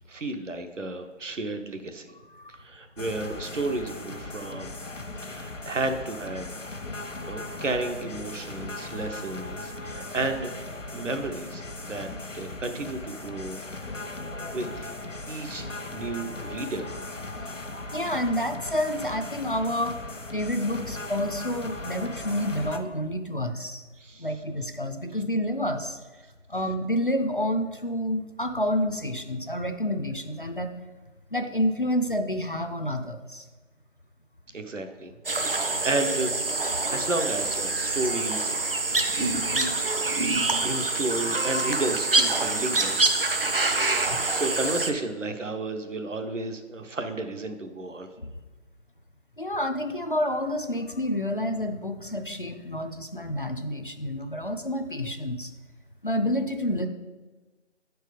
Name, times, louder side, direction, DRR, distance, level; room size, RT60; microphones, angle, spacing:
voice 1, 0.1-2.1 2.6-4.7 5.2-6.5 7.3-10.5 10.9-13.9 14.3-14.9 15.3-16.9 24.0-24.3 34.5-35.1 35.5-36.4 36.9-38.6 39.2-39.7 40.5-43.0 44.3-48.1, right 2 dB, 75° right, 6 dB, 1.0 m, -32 dB
sound 1, 3.0-22.8, left 2 dB, 80° left, 1.1 m, -38 dB
voice 2, 17.9-20.0 20.3-23.8 24.2-26.0 26.5-30.7 31.3-33.4 36.6-36.7 38.9-39.0 44.0-44.3 48.2-48.3 49.4-55.5 56.0-56.9, left 1 dB, 45° left, 7 dB, 0.4 m, -29 dB
sound 2, 35.3-44.9, right 2 dB, 50° right, 0.6 m, -26 dB
7.7 x 4.6 x 5.0 m, 1.2 s
figure-of-eight pair, 170°, 37 cm